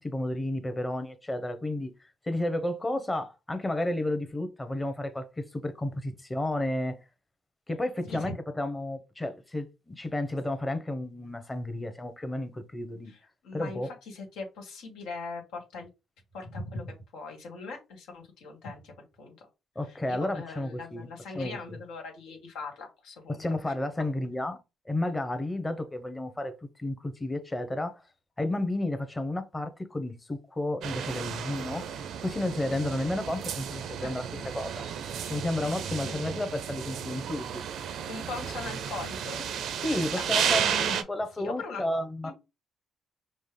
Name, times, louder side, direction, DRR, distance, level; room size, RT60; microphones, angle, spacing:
voice 1, 0.0-1.9 2.2-7.0 7.7-13.1 13.5-13.9 19.7-21.1 21.3-21.8 23.3-24.6 24.9-28.0 28.4-31.9 32.2-34.8 35.3-37.6 39.8-42.3, left 1 dB, 15° left, 0.8 m, -32 dB
voice 2, 13.4-15.9 16.3-19.3 19.9-23.7 34.0-34.4 36.0-36.2 38.1-39.4 39.9-40.3 41.4-41.9 42.2-42.3, left 3 dB, 90° left, 1.4 m, -40 dB
sound 1, 30.8-41.0, right 8 dB, 75° right, 0.5 m, -33 dB
5.4 x 2.0 x 3.3 m
cardioid pair, 90°, 0 cm